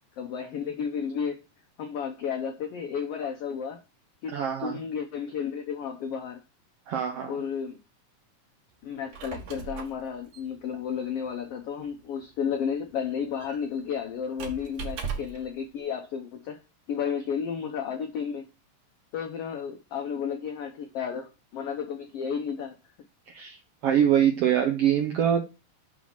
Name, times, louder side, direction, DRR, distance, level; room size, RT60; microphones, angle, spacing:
voice 1, 0.2-1.4 1.8-3.8 4.2-6.4 7.3-7.8 8.8-16.6 16.9-18.5 19.1-22.7, left 7 dB, 85° left, 1.3 m, -32 dB
voice 2, 4.3-4.8 6.9-7.4 23.3-23.6 23.8-25.4, right 9 dB, 80° right, 1.4 m, -24 dB
Squeak, 8.9-15.5, right 5 dB, 60° right, 2.2 m, -40 dB
5.8 x 4.9 x 5.8 m
omnidirectional pair, 3.7 m